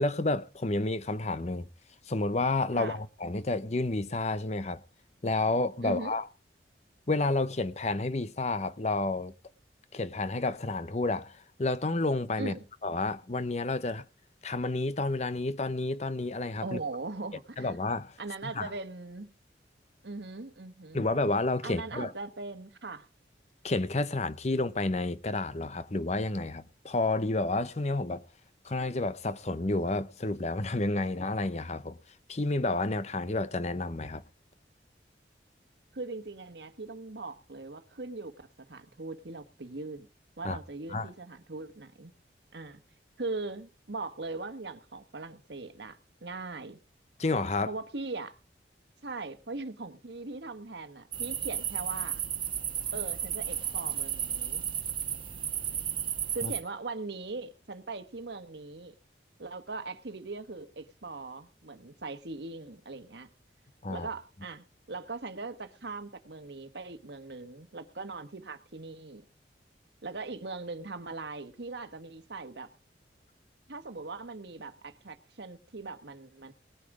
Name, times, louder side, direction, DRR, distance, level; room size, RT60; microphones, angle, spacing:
voice 1, 0.0-1.7 2.1-4.8 5.2-6.3 7.1-9.3 9.9-12.5 12.8-14.1 14.4-16.8 17.6-18.1 18.4-18.7 20.9-22.1 23.6-28.2 28.6-32.0 32.3-34.2 40.4-40.6 40.9-41.1 47.2-47.7 56.4-56.5 63.8-64.1, left 2 dB, 40° left, 0.8 m, -30 dB
voice 2, 5.8-6.2 12.4-12.6 16.6-17.7 18.2-19.3 20.0-21.0 21.6-23.1 35.9-38.3 38.7-40.1 40.4-42.1 42.5-42.8 43.2-46.8 47.7-48.3 49.0-52.2 52.9-54.6 56.3-58.9 59.4-63.3 63.9-69.2 70.0-72.7 73.7-76.5, right 3 dB, 70° right, 1.3 m, -40 dB
sound 1, 51.1-56.6, right 9 dB, 30° right, 1.2 m, -33 dB
19.0 x 8.9 x 4.8 m
head